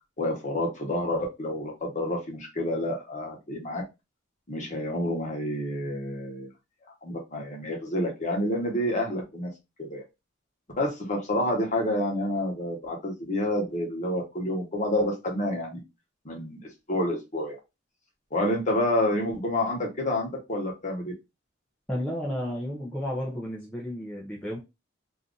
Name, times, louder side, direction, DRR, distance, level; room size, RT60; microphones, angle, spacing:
voice 1, 0.2-3.8 4.5-6.5 7.0-9.5 9.8-10.0 10.8-15.8 16.2-16.6 16.9-17.6 18.3-21.1, left 1 dB, 35° left, 0 dB, 1.1 m, -28 dB
voice 2, 21.9-24.6, equal, 5° left, -4 dB, 0.6 m, -32 dB
2.8 x 2.5 x 3.7 m, 0.24 s
head